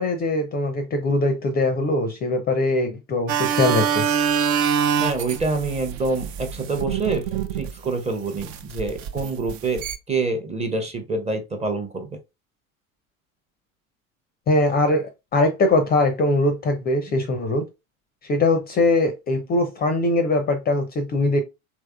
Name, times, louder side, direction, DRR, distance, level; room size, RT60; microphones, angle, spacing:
voice 1, 0.0-4.0 14.5-17.6 18.2-21.4, left 2 dB, 25° left, 0.5 m, -21 dB
sound 1, 3.3-7.9 8.4-10.0, right 8 dB, 50° right, 0.6 m, -25 dB
voice 2, 5.0-7.3 7.6-12.1, right 3 dB, 15° right, 0.7 m, -26 dB
3.5 x 2.9 x 2.2 m
figure-of-eight pair, 75°, 41 cm